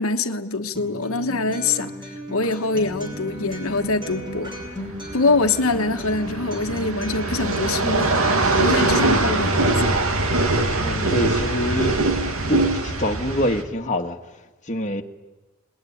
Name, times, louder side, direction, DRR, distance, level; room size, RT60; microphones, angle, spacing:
voice 1, 0.0-4.5 5.1-10.0, left 3 dB, 85° left, 6 dB, 1.3 m, -24 dB
Acoustic guitar, 0.7-8.7, equal, 20° right, 6.0 m, -35 dB
sound 1, 2.8-13.6, right 2 dB, 85° right, 2.5 m, -23 dB
voice 2, 10.4-11.9 12.5-14.2 14.7-15.0, left 1 dB, 35° left, 3 dB, 1.7 m, -26 dB
26.5 x 20.5 x 10.0 m, 1.2 s
head